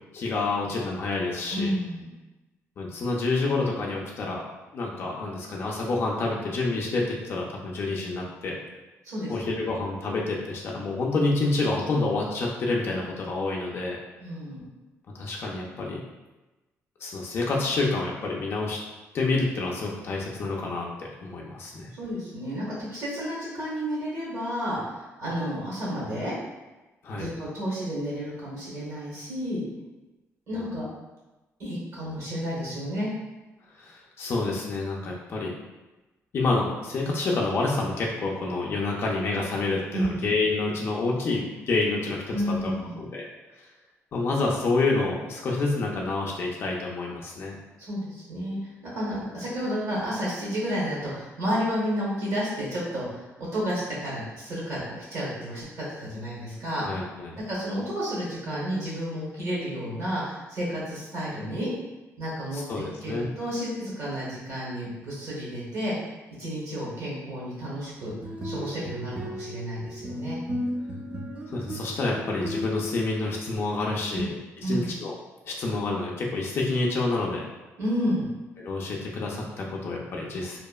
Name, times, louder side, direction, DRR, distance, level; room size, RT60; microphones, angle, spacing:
voice 1, 0.1-1.7 2.8-4.5 4.7-8.6 9.3-14.0 15.1-16.0 17.0-18.8 19.1-21.9 27.0-27.3 33.8-35.5 36.3-42.2 42.6-42.7 43.0-43.3 44.1-47.6 56.8-57.4 62.5-63.3 71.5-74.3 74.6-75.1 75.5-77.5 78.6-80.6, left 3 dB, 45° left, -2 dB, 0.4 m, -28 dB
voice 2, 1.5-2.0 9.0-9.6 14.2-14.6 21.9-22.7 22.9-26.3 27.1-29.6 30.5-30.8 31.6-33.1 39.9-40.1 42.3-43.0 47.8-56.8 57.5-61.7 62.2-65.9 66.4-68.1 68.4-70.4 74.1-74.3 74.6-74.9 77.8-78.3, equal, 60° right, -6 dB, 1.0 m, -31 dB
sound 1, 68.0-73.6, equal, 25° right, 0.5 m, -35 dB
2.8 x 2.1 x 2.3 m, 1.1 s
cardioid pair, 130°, 6 cm